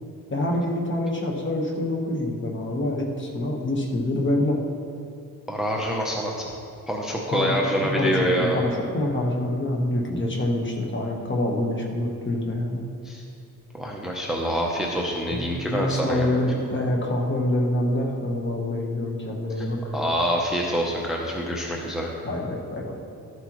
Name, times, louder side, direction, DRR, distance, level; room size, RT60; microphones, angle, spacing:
voice 1, 0.3-4.6 7.3-12.8 15.3-19.9 22.2-23.0, left 1 dB, 30° left, 0 dB, 1.3 m, -26 dB
voice 2, 5.5-6.5 6.9-8.6 13.0-13.2 13.7-16.3 19.6-19.7 19.9-22.1, equal, ahead, -1 dB, 0.7 m, -26 dB
13.0 x 7.9 x 3.1 m, 2.6 s
cardioid pair, 140°, 36 cm